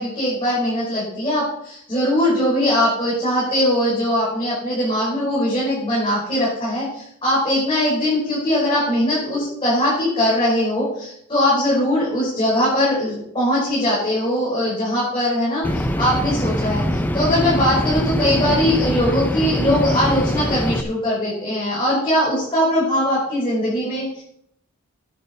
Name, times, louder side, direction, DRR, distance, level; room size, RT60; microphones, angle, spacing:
voice 1, 0.0-24.2, left 1 dB, 25° left, -8 dB, 5.8 m, -21 dB
sound 1, 15.6-20.8, equal, 10° left, 0.7 m, -23 dB
10.5 x 10.0 x 4.6 m, 0.72 s
head